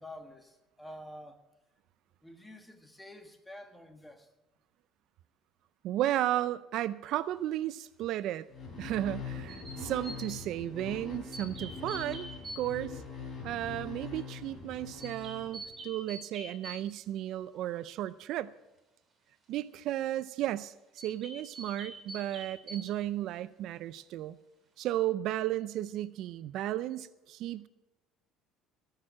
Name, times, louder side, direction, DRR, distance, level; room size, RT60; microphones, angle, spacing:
voice 1, 0.0-1.4 2.2-4.3, left 1 dB, 10° left, 7 dB, 1.5 m, -49 dB
voice 2, 5.8-8.5 8.8-12.3 12.6-13.0 13.4-18.5 19.5-24.4 24.8-27.7, right 13 dB, 65° right, 17 dB, 0.4 m, -34 dB
sound 1, 8.5-15.9, left 4 dB, 30° left, 3.9 m, -43 dB
sound 2, 9.5-10.4 11.3-12.6 15.0-16.8 21.0-22.9, right 1 dB, 25° right, 3.2 m, -45 dB
17.5 x 6.8 x 7.4 m, 1.0 s
cardioid pair, 120°, 0 cm